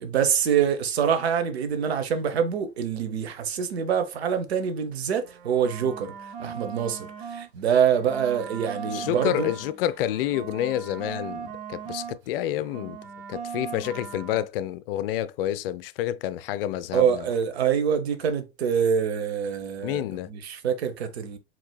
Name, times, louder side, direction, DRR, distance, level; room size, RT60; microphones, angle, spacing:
voice 1, 0.0-6.1 6.4-9.5 16.9-20.0 20.3-21.4, right 7 dB, 80° right, 1.0 m, -25 dB
sound 1, 5.2-7.5 7.8-12.2 12.4-14.5, right 7 dB, 60° right, 1.2 m, -39 dB
voice 2, 8.9-13.0 13.3-17.3 19.8-20.3, left 12 dB, 65° left, 0.5 m, -29 dB
4.5 x 4.0 x 2.3 m
hypercardioid pair, 80°, 31 cm